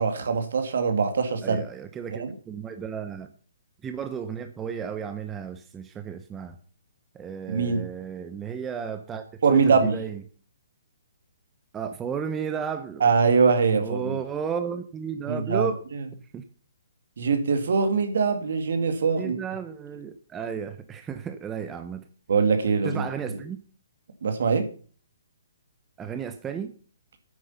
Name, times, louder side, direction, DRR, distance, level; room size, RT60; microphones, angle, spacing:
voice 1, 0.0-1.6 2.2-2.3 7.5-7.8 9.4-10.0 13.0-14.2 15.3-16.0 17.2-19.4 22.3-23.0 24.2-24.7, right 5 dB, 70° right, 7 dB, 2.2 m, -23 dB
voice 2, 1.4-3.3 3.8-6.6 7.1-10.2 11.7-13.0 13.8-15.8 16.3-16.4 19.2-22.0 22.8-23.6 26.0-26.7, right 7 dB, 15° right, 8 dB, 0.9 m, -33 dB
9.7 x 8.4 x 5.6 m, 0.41 s
hypercardioid pair, 140°, 0 cm